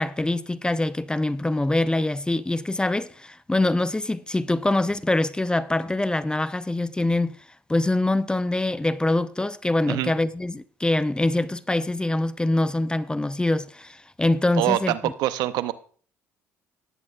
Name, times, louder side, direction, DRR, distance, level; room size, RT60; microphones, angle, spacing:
voice 1, 0.0-7.3 7.7-15.1, left 2 dB, 10° left, 0.6 m, -24 dB
voice 2, 14.6-15.7, right 15 dB, 65° right, 0.6 m, -25 dB
18.0 x 8.4 x 2.4 m
hypercardioid pair, 55°, 7 cm